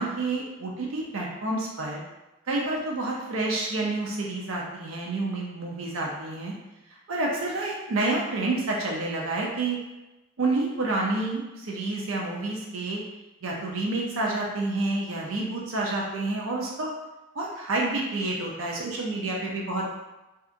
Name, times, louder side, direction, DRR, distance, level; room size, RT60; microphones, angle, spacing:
voice 1, 0.0-2.0 2.5-6.5 7.1-9.8 10.4-13.0 13.4-16.9 17.4-20.0, right 2 dB, 85° right, -2 dB, 0.5 m, -29 dB
2.7 x 2.3 x 2.4 m, 1.0 s
head